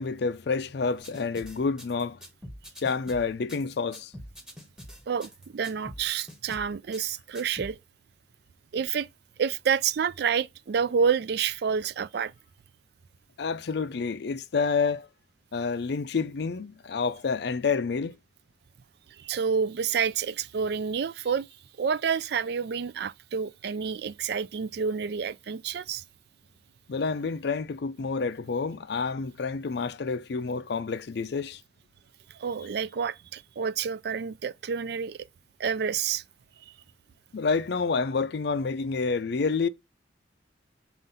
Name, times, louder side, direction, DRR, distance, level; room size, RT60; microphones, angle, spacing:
voice 1, 0.0-2.2 2.8-4.1 13.4-15.1 15.5-18.2 26.9-31.6 37.3-39.7, left 4 dB, 55° left, 0.4 m, -28 dB
sound 1, 1.0-7.7, equal, 5° right, 1.2 m, -45 dB
voice 2, 5.1-7.8 8.7-9.1 9.4-12.3 19.2-21.5 21.8-26.0 32.3-35.3 35.6-36.2, right 6 dB, 55° right, 0.3 m, -29 dB
7.5 x 2.5 x 5.5 m
head